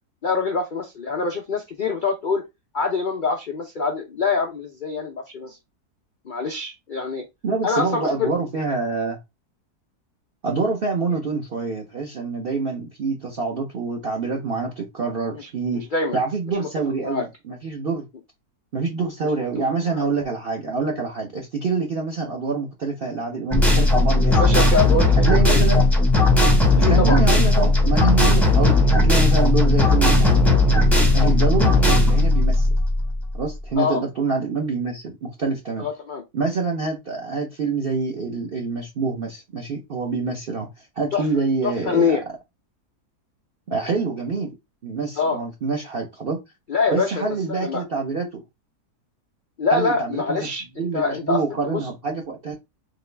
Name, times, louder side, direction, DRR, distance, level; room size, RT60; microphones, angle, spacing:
voice 1, 0.2-2.4 2.7-5.6 6.3-7.2 7.6-8.3 15.3-16.2 16.6-16.7 17.0-17.2 19.9-20.1 24.2-25.6 26.8-27.2 33.8-34.0 35.8-36.2 41.1-41.3 41.6-42.2 45.2-45.4 46.7-47.2 47.6-47.8 49.6-51.8, left 4 dB, 65° left, 0.5 m, -25 dB
voice 2, 7.4-9.2 10.4-15.8 16.1-18.0 18.7-24.7 25.3-25.8 26.8-30.7 31.1-32.7 33.3-35.9 36.3-42.1 43.7-44.5 44.8-46.4 46.9-48.4 49.7-50.5 50.8-52.6, right 4 dB, 45° right, 0.8 m, -26 dB
sound 1, 23.5-33.4, left 2 dB, ahead, 0.7 m, -17 dB
3.9 x 3.0 x 3.3 m
omnidirectional pair, 1.7 m